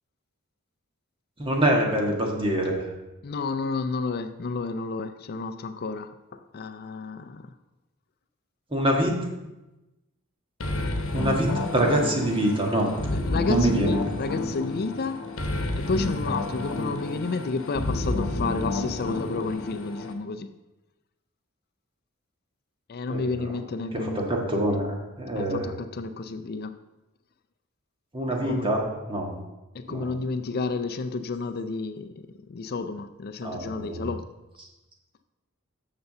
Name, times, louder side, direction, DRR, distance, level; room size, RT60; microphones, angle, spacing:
voice 1, 1.4-2.9 8.7-9.3 11.1-12.9 13.5-14.0 23.1-23.5 24.0-24.9 25.2-25.7 28.1-29.4 29.9-30.1 33.4-34.0, right 1 dB, 25° right, 0 dB, 1.7 m, -25 dB
voice 2, 3.2-7.5 13.1-15.2 15.8-20.5 22.9-24.2 25.3-26.8 28.4-28.7 29.7-32.1 32.5-34.3, left 4 dB, 45° left, 10 dB, 0.4 m, -31 dB
sound 1, 10.6-20.1, left 2 dB, 60° left, 1.2 m, -30 dB
6.9 x 6.8 x 6.7 m, 1.0 s
head